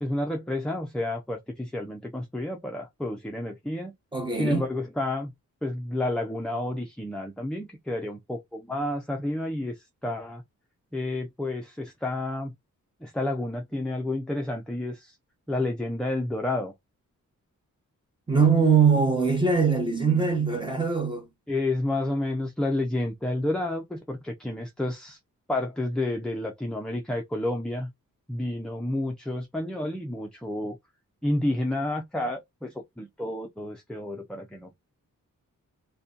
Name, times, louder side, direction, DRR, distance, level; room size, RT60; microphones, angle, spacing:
voice 1, 0.0-3.9 4.4-5.3 5.6-10.4 10.9-12.5 13.0-15.1 15.5-16.7 21.5-25.2 25.5-27.9 28.3-30.8 31.2-34.9, left 1 dB, 5° left, 0.3 m, -30 dB
voice 2, 4.1-4.6 18.3-21.3, right 5 dB, 15° right, 0.8 m, -22 dB
2.6 x 2.2 x 2.3 m
wide cardioid pair, 135°, 33 cm